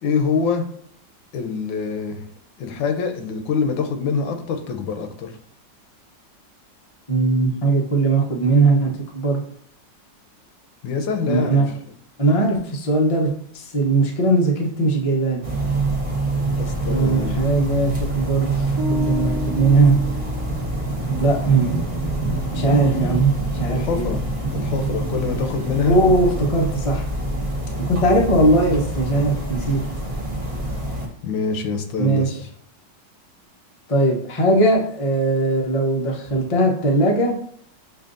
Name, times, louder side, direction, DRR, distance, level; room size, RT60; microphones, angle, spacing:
voice 1, 0.0-0.6 1.3-2.2 2.6-5.3 10.8-11.7 16.5-17.5 23.7-24.2 24.5-26.3 31.2-32.3, left 5 dB, 90° left, 6 dB, 1.4 m, -25 dB
voice 2, 7.1-9.4 11.2-11.6 12.2-15.4 16.8-19.9 21.2-21.7 22.5-24.1 25.8-27.1 27.9-29.8 32.0-32.4 33.9-37.3, right 2 dB, 55° left, 0 dB, 0.3 m, -19 dB
sound 1, 15.4-31.1, right 2 dB, 30° right, 0.6 m, -25 dB
sound 2, 18.8-21.0, left 1 dB, 70° right, 1.2 m, -31 dB
7.1 x 2.5 x 2.5 m, 0.65 s
omnidirectional pair, 2.0 m